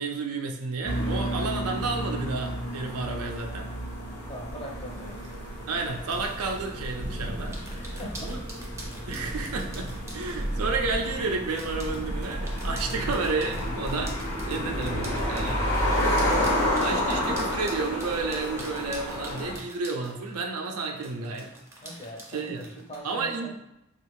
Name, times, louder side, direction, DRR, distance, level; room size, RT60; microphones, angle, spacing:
voice 1, 0.0-3.7 5.7-7.6 8.2-8.4 9.1-14.2 14.4-15.7 16.8-21.5 22.3-22.6 23.0-23.6, right 4 dB, 85° right, 2 dB, 0.5 m, -31 dB
sound 1, 0.8-19.5, equal, 75° left, 0.8 m, -31 dB
voice 2, 4.2-5.2 7.7-8.3 8.9-9.1 21.8-23.6, equal, 25° left, -1 dB, 0.6 m, -41 dB
Thunder, 4.2-17.9, equal, 55° right, 0.8 m, -37 dB
sound 2, 7.5-10.5 11.5-20.5 21.0-23.0, right 1 dB, 15° right, 0.5 m, -45 dB
3.3 x 2.4 x 3.1 m, 0.86 s
head